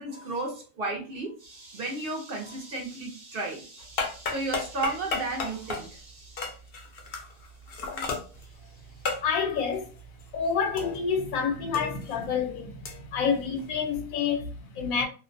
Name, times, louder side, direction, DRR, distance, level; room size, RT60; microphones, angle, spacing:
voice 1, 0.0-6.5 7.9-8.1, right 2 dB, 60° right, 0.6 m, -34 dB
sound 1, 3.8-11.3 11.6-14.0, left 4 dB, 60° left, 0.6 m, -35 dB
voice 2, 9.2-10.0 10.3-15.1, left 6 dB, 85° left, 1.0 m, -28 dB
2.5 x 2.0 x 2.5 m
omnidirectional pair, 1.5 m